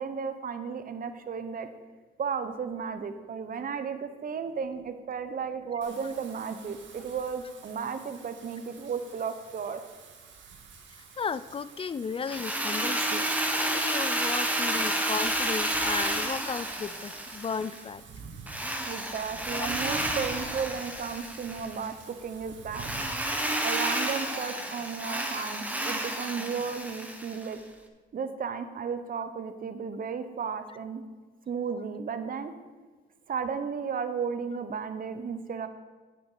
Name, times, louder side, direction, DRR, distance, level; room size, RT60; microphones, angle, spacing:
voice 1, 0.0-1.7 2.2-9.8 18.9-22.9 23.6-27.6 28.1-31.0 31.5-32.5 33.3-35.7, right 6 dB, 45° right, 10 dB, 1.0 m, -34 dB
Wind / Rain, 5.8-24.4, right 4 dB, 70° right, 1.7 m, -48 dB
voice 2, 11.2-18.0 19.5-19.7 25.3-25.4, left 6 dB, 30° left, 16 dB, 0.4 m, -35 dB
Drill, 12.3-17.8 18.5-21.8 22.7-27.5, right 1 dB, 10° right, 1.3 m, -30 dB
9.1 x 8.0 x 5.0 m, 1.4 s
cardioid pair, 90°, 20 cm